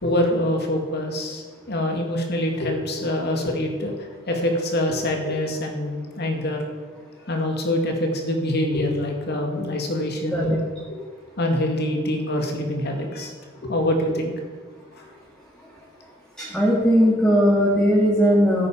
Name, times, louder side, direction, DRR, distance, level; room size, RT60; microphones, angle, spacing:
voice 1, 0.0-3.9 4.2-6.7 7.2-10.6 11.4-13.3 13.6-14.3 15.0-15.1, left 1 dB, 55° left, 2 dB, 2.2 m, -25 dB
voice 2, 16.4-18.7, equal, 5° left, -5 dB, 2.1 m, -18 dB
15.5 x 8.7 x 5.0 m, 1.5 s
head